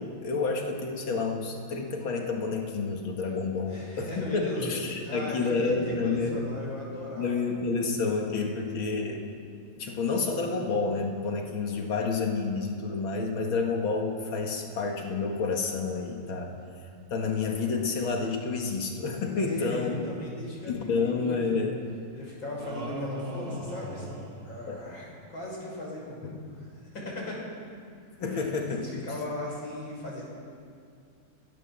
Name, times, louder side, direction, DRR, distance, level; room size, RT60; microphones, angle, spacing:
voice 1, 0.0-6.5 7.2-9.2 9.8-16.5 17.1-20.0 20.7-21.8 24.7-24.8 26.2-26.4 28.2-28.8, left 4 dB, 85° left, 2 dB, 2.8 m, -29 dB
voice 2, 3.7-4.7 5.0-7.4 19.4-21.4 22.1-27.4 28.2-30.3, left 1 dB, 70° left, -3 dB, 6.8 m, -37 dB
sound 1, 22.6-25.1, equal, 50° right, 2.1 m, -38 dB
22.0 x 17.5 x 7.5 m, 2.3 s
omnidirectional pair, 2.1 m